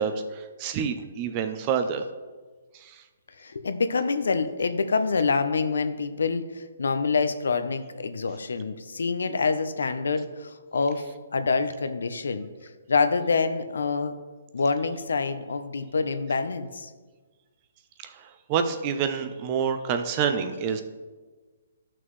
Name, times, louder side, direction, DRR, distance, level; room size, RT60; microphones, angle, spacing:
voice 1, 0.0-2.1 18.0-18.1 18.5-20.8, right 7 dB, 20° right, 8 dB, 0.5 m, -27 dB
voice 2, 3.4-12.5 12.9-14.2 14.5-16.9, left 4 dB, 85° left, 10 dB, 0.7 m, -26 dB
12.5 x 6.0 x 3.2 m, 1.4 s
hypercardioid pair, 170°, 0 cm